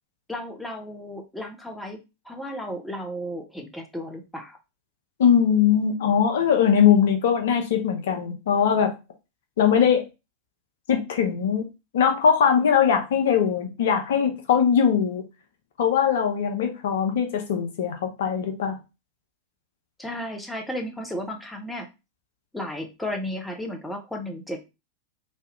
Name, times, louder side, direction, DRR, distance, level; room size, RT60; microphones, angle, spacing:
voice 1, 0.3-4.6 20.0-21.9 22.5-24.7, left 1 dB, 5° left, 0.6 m, -34 dB
voice 2, 5.2-8.9 9.6-10.0 10.9-11.7 11.9-15.2 15.8-18.8, left 7 dB, 60° left, 0.6 m, -21 dB
3.1 x 2.3 x 2.9 m
figure-of-eight pair, 90°, 0 cm